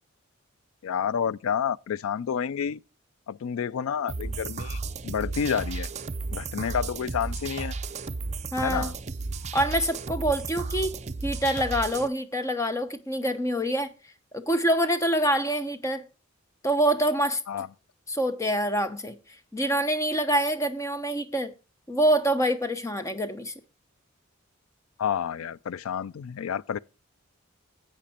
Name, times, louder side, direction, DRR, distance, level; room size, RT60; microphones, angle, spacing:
voice 1, 0.8-2.8 3.3-5.9 6.3-7.7 8.6-8.9 17.5-17.7 25.0-26.8, left 7 dB, 85° left, 0.4 m, -29 dB
sound 1, 4.1-12.1, right 3 dB, 35° right, 0.6 m, -34 dB
voice 2, 8.5-8.9 9.5-10.9 11.2-13.9 14.3-16.0 16.6-17.4 18.1-19.1 19.5-21.5 21.9-23.5, right 1 dB, 15° left, 0.9 m, -25 dB
10.0 x 8.2 x 4.3 m
head